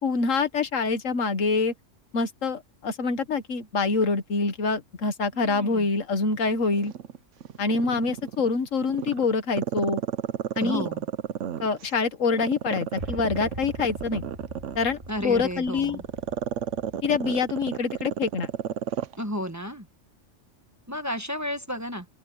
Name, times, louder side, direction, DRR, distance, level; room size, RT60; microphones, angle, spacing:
voice 1, 0.0-1.7 2.1-6.9 7.6-10.0 10.6-10.9 11.6-14.2 14.8-16.0 17.0-18.5, left 4 dB, 85° left, 1.8 m, -25 dB
voice 2, 5.3-5.8 10.6-11.0 15.1-16.0 19.2-19.9 20.9-22.1, equal, 15° right, 1.3 m, -32 dB
Growling, 6.7-8.5 8.9-11.9 12.3-19.2 19.5-19.6, right 9 dB, 75° right, 1.1 m, -32 dB
sound 1, 12.9-19.1, right 1 dB, 45° right, 6.9 m, -43 dB
open air
omnidirectional pair, 1.3 m